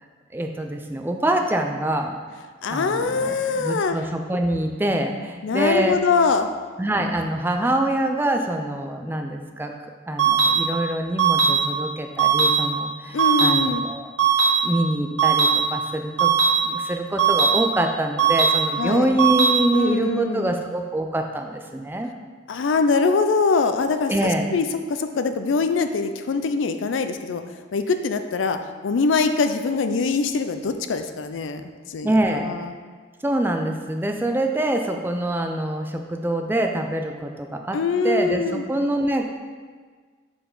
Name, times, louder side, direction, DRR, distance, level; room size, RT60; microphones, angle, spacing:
voice 1, 0.3-2.1 2.7-6.0 6.8-9.7 10.1-14.1 14.6-16.3 16.6-22.1 24.1-24.5 32.0-32.5 33.2-37.8 38.0-39.3, right 1 dB, 10° right, 4 dB, 0.4 m, -25 dB
voice 2, 2.6-4.0 5.4-6.5 13.1-13.9 18.8-19.1 19.7-20.5 22.5-27.4 27.7-28.6 28.8-31.6 31.9-32.7 37.7-38.6, left 4 dB, 85° left, 8 dB, 0.4 m, -23 dB
sound 1, 10.2-10.5 11.2-11.5 12.2-12.5 13.2-13.5 14.2-14.5 15.2-15.5 16.2-16.5 17.2-17.5 18.2-18.5 19.2-19.5, right 6 dB, 80° right, 1.3 m, -18 dB
6.3 x 4.6 x 3.8 m, 1.5 s
head